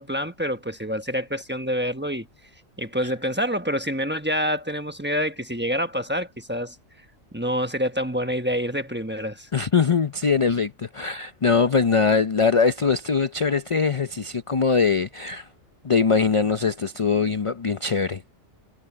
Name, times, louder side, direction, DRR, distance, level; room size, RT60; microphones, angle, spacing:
voice 1, 0.0-2.3 2.8-6.8 7.3-9.5, equal, 10° right, 1.1 m, -27 dB
voice 2, 9.5-15.5 15.8-18.2, left 5 dB, 40° left, 0.4 m, -22 dB
omnidirectional pair, 1.4 m